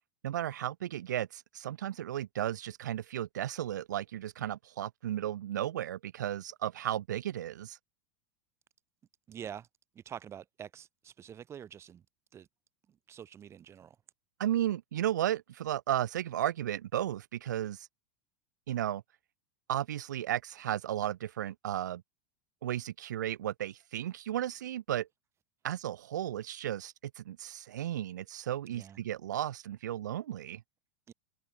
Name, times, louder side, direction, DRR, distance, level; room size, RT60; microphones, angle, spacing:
voice 1, 0.2-7.8 14.4-17.9 18.7-19.0 19.7-22.0 22.6-25.1 25.6-30.6, right 12 dB, 90° right, 0.8 m, -34 dB
voice 2, 9.3-9.7 9.9-12.0 12.3-12.5 12.9-14.0 28.7-29.0 31.1-31.2, right 9 dB, 30° right, 3.1 m, -46 dB
open air
hypercardioid pair, 115°, 9 cm